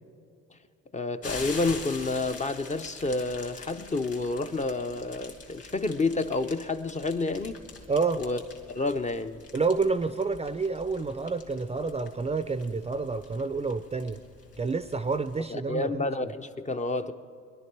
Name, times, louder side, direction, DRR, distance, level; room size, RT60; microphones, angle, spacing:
voice 1, 0.9-7.6 8.2-8.4 8.7-9.4 15.5-17.1, left 3 dB, 25° left, 0.6 m, -29 dB
sound 1, 1.2-15.4, left 4 dB, 50° left, 2.3 m, -45 dB
voice 2, 7.9-8.2 9.5-14.2 14.6-16.1, right 4 dB, 20° right, 0.5 m, -29 dB
22.5 x 11.0 x 4.6 m
cardioid pair, 90°, 30 cm